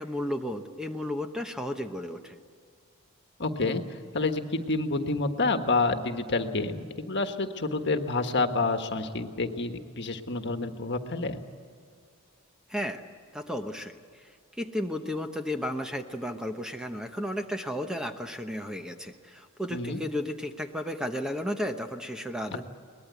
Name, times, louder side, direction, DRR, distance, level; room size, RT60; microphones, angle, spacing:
voice 1, 0.0-2.4 12.7-13.0 13.3-14.0 14.6-22.6, left 1 dB, 5° right, 5 dB, 1.0 m, -33 dB
voice 2, 3.4-3.8 4.1-11.4 19.7-20.0, left 3 dB, 55° left, 6 dB, 1.5 m, -28 dB
22.5 x 20.0 x 8.3 m, 2.2 s
head